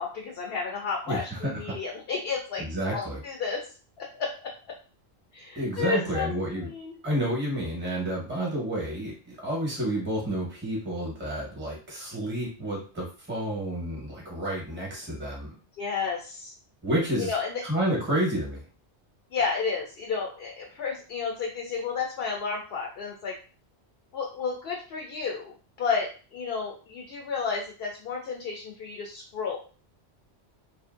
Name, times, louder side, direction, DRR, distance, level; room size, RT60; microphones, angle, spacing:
voice 1, 0.0-2.6 2.9-3.6 4.0-4.5 5.3-7.0 15.8-16.5 17.3-17.6 19.3-23.4 24.1-29.6, left 5 dB, 65° left, 0 dB, 0.8 m, -32 dB
voice 2, 1.1-1.8 2.6-3.2 5.5-6.7 7.0-15.5 16.8-17.3 17.6-18.6, right 1 dB, 10° right, -3 dB, 1.0 m, -30 dB
2.7 x 2.6 x 2.4 m, 0.37 s
omnidirectional pair, 1.2 m